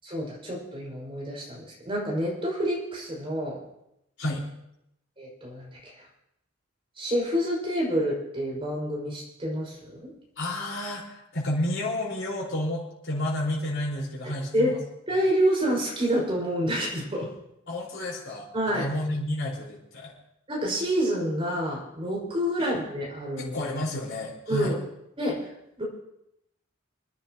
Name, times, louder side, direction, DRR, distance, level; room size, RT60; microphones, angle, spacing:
voice 1, 0.0-3.6 5.2-6.0 7.0-10.1 14.5-14.7 15.1-17.3 18.5-18.8 20.5-23.5 24.5-24.8 25.2-25.5 25.8-25.9, equal, 25° right, -4 dB, 5.9 m, -28 dB
voice 2, 10.4-14.8 17.7-20.1 22.6-22.7 23.4-24.7, left 1 dB, 65° left, -4 dB, 5.1 m, -31 dB
29.5 x 10.5 x 3.1 m, 0.82 s
head